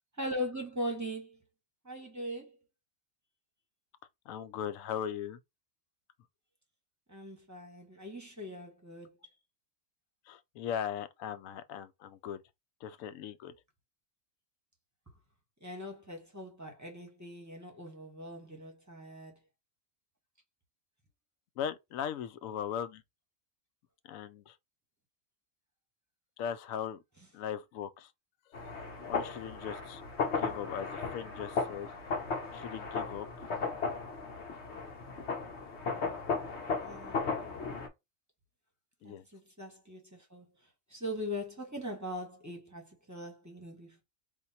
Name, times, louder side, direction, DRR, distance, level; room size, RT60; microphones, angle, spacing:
voice 1, 0.2-1.4 1.8-2.6 7.1-9.2 15.6-19.4 36.8-37.6 39.0-40.5 40.9-44.0, equal, 15° right, 1.1 m, -41 dB
voice 2, 4.3-5.4 10.3-12.4 12.8-13.5 21.6-23.0 24.0-24.6 26.4-27.0 27.3-28.1 28.6-28.7 29.1-31.9 32.5-33.5 39.0-39.3, left 8 dB, 80° left, 1.0 m, -39 dB
sound 1, 28.5-37.9, left 4 dB, 55° left, 1.3 m, -36 dB
3.6 x 2.6 x 4.1 m
omnidirectional pair, 1.4 m